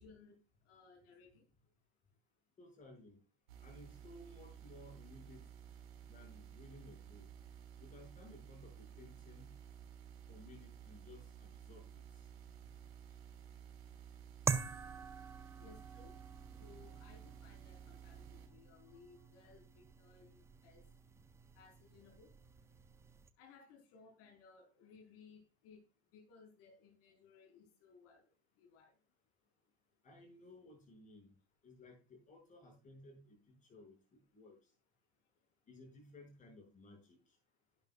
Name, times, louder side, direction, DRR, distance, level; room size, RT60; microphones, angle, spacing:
voice 1, 0.0-1.5 13.1-13.9 15.6-16.2 16.5-20.9 21.5-22.4 23.4-25.8 26.1-29.0, left 5 dB, 45° left, 2 dB, 4.7 m, -62 dB
voice 2, 2.6-3.2 3.6-5.5 6.1-7.3 7.8-9.6 10.3-12.3 30.0-31.3 31.6-34.6 35.7-37.4, left 2 dB, 25° left, 1 dB, 6.2 m, -58 dB
sound 1, 3.5-18.5, right 9 dB, 70° right, 3.5 m, -54 dB
sound 2, 14.5-23.3, right 5 dB, 10° right, 0.4 m, -45 dB
11.5 x 10.5 x 2.4 m, 0.35 s
hypercardioid pair, 115°, 32 cm